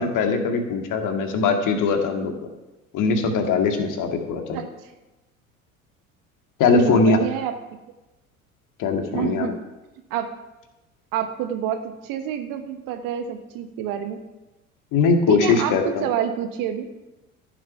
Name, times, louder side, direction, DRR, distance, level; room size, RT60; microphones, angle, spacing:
voice 1, 0.0-2.3 2.9-4.6 6.6-7.2 8.8-9.5 14.9-16.1, left 4 dB, 45° left, 5 dB, 2.0 m, -21 dB
voice 2, 6.8-7.6 9.1-9.6 10.1-10.3 11.1-14.2 15.3-16.9, right 9 dB, 50° right, 8 dB, 1.4 m, -27 dB
14.0 x 7.3 x 5.9 m, 1.0 s
figure-of-eight pair, 65°, 42 cm